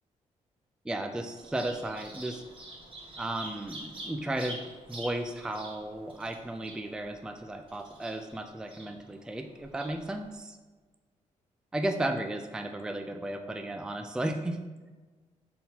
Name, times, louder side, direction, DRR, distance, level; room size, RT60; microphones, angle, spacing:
voice 1, 0.8-2.4 3.2-4.6 4.9-10.6 11.7-14.6, right 1 dB, 5° right, 5 dB, 0.4 m, -34 dB
Bird vocalization bird call bird song, 1.4-10.3, right 1 dB, 40° right, 1.5 m, -47 dB
4.2 x 4.0 x 5.6 m, 1.3 s
cardioid pair, 90°, 13 cm